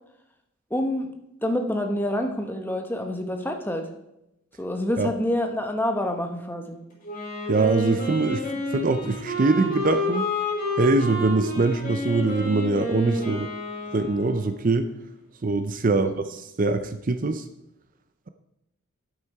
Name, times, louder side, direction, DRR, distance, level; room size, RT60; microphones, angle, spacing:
voice 1, 0.7-1.1 1.4-3.9 4.6-6.8 15.9-16.2, left 1 dB, 10° left, 4 dB, 0.9 m, -27 dB
Wind instrument woodwind instrument, 7.0-14.8, left 1 dB, 35° left, 4.8 m, -30 dB
voice 2, 7.5-10.2 10.8-13.5 13.9-14.9 15.4-17.4, right 3 dB, 40° right, 9 dB, 0.5 m, -23 dB
10.5 x 8.1 x 4.7 m, 0.86 s
head